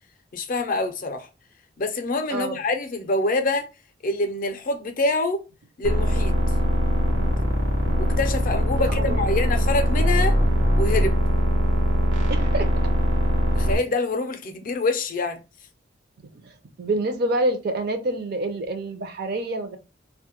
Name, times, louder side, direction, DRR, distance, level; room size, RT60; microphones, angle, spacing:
voice 1, 0.3-1.3 1.8-3.7 4.0-5.4 5.8-6.3 8.0-10.4 10.8-11.2 13.5-15.4, left 2 dB, 45° left, 0.4 m, -25 dB
sound 1, 5.8-13.8, equal, 80° right, 0.9 m, -21 dB
voice 2, 8.7-9.2 12.3-12.7 16.4-16.5 16.8-19.8, right 2 dB, 55° right, 0.5 m, -27 dB
2.2 x 2.1 x 2.9 m
head